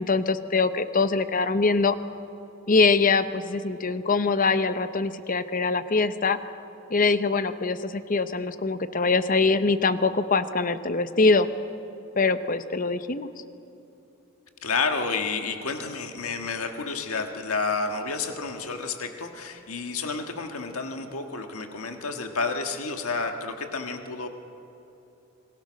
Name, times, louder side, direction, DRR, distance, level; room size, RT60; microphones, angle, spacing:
voice 1, 0.0-2.0 2.7-6.4 6.9-11.5 12.2-13.3, left 4 dB, 40° left, 12 dB, 0.8 m, -23 dB
voice 2, 14.6-24.3, left 4 dB, 85° left, 5 dB, 1.6 m, -30 dB
27.5 x 20.5 x 6.4 m, 2.8 s
head